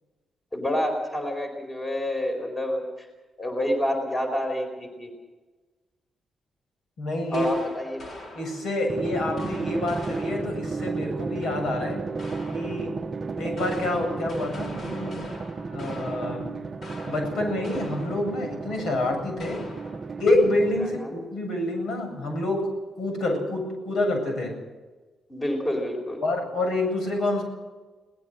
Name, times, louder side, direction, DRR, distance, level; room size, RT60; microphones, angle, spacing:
voice 1, 0.5-3.1 3.4-5.1 7.3-8.0 20.8-21.1 25.3-26.2, left 1 dB, 20° left, 3 dB, 4.4 m, -28 dB
voice 2, 7.0-7.5 8.3-12.1 12.5-13.0 13.4-15.2 15.7-16.6 17.0-19.7 20.2-22.7 23.0-24.6 26.2-27.4, left 1 dB, 75° left, 3 dB, 7.8 m, -27 dB
sound 1, 7.3-8.9 9.4-10.8 12.2-13.0 13.4-18.5 18.7-18.8 19.4-20.2, left 2 dB, 50° left, 4.2 m, -43 dB
Drum, 8.9-21.3, right 4 dB, 30° right, 0.8 m, -33 dB
22.0 x 19.0 x 6.5 m, 1.2 s
wide cardioid pair, 145°, 0 cm